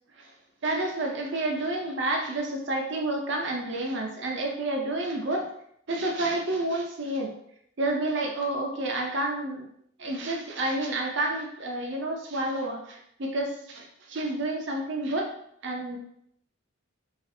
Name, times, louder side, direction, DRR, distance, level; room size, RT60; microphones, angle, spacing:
voice 1, 0.6-5.5 5.9-7.3 7.8-9.7 10.0-15.3 15.6-16.0, right 2 dB, 55° right, 1 dB, 0.5 m, -29 dB
2.4 x 2.4 x 2.6 m, 0.71 s
head